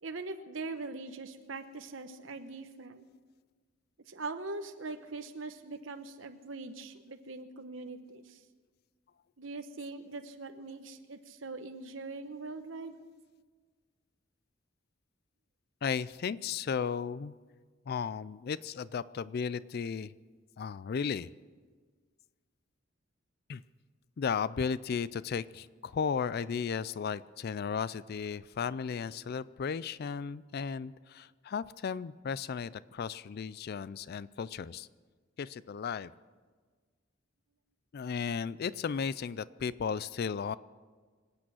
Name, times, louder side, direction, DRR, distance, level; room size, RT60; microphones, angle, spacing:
voice 1, 0.0-3.1 4.1-8.4 9.4-13.0, right 3 dB, 70° right, 7 dB, 1.0 m, -42 dB
voice 2, 15.8-17.3 17.9-20.1 20.6-21.3 23.5-23.6 24.2-34.9 35.4-36.1 37.9-40.6, left 6 dB, 50° left, 18 dB, 0.4 m, -35 dB
25.5 x 8.7 x 6.3 m, 1.5 s
head